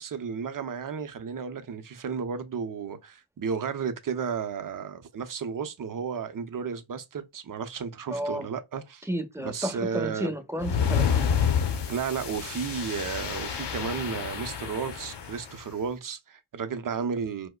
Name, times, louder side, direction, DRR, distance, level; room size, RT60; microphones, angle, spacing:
voice 1, 0.0-9.1 9.4-10.3 11.9-17.5, right 6 dB, 45° right, 0.6 m, -33 dB
voice 2, 8.1-8.5 9.1-11.3, right 1 dB, 5° right, 0.8 m, -32 dB
sound 1, 10.6-15.5, left 7 dB, 60° left, 0.7 m, -28 dB
4.5 x 2.1 x 2.2 m
cardioid pair, 50°, 47 cm